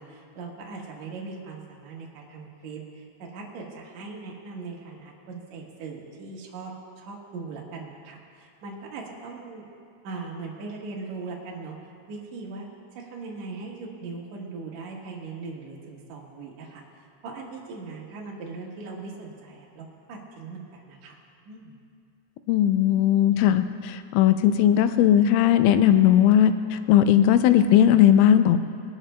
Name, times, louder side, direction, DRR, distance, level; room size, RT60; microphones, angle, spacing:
voice 1, 0.0-9.7 10.0-11.7 12.1-12.7 12.9-16.8 17.2-21.2 21.4-21.7, right 4 dB, 85° right, -3 dB, 1.6 m, -39 dB
voice 2, 22.5-28.6, left 10 dB, 90° left, 10 dB, 3.1 m, -18 dB
21.0 x 12.5 x 2.2 m, 2.3 s
omnidirectional pair, 5.6 m